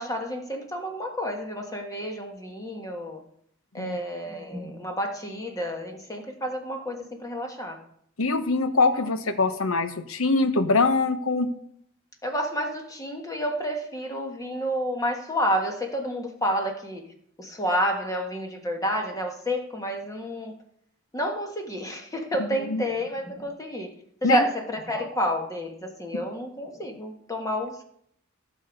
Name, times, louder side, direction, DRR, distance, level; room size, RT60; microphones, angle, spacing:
voice 1, 0.0-3.2 3.7-7.8 12.2-17.1 17.4-20.5 21.1-23.9 24.2-27.8, equal, 15° left, 3 dB, 1.5 m, -30 dB
voice 2, 8.2-11.5 22.7-22.8 24.2-24.4, left 3 dB, 85° left, 10 dB, 1.0 m, -23 dB
15.0 x 6.3 x 5.3 m, 0.68 s
head